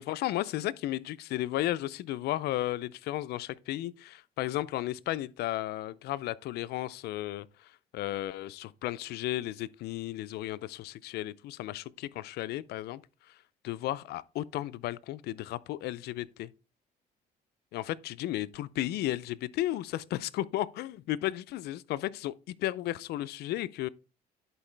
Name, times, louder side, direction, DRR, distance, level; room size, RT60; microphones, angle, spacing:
voice 1, 0.1-13.0 13.3-13.4 13.6-16.5 17.7-23.9, left 15 dB, 70° left, 0.5 m, -34 dB
11.0 x 4.5 x 3.3 m
cardioid pair, 110°, 17 cm